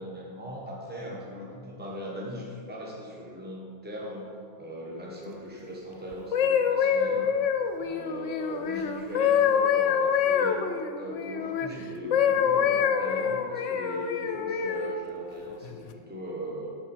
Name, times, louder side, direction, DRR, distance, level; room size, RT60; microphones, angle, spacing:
voice 1, 0.0-4.3 4.6-7.3 7.8-10.6 11.0-16.7, equal, 10° right, -3 dB, 1.3 m, -39 dB
sound 1, 6.1-11.7 12.1-15.0 15.6-15.9, left 8 dB, 70° left, 0.9 m, -26 dB
12.0 x 4.8 x 4.5 m, 2.3 s
omnidirectional pair, 1.4 m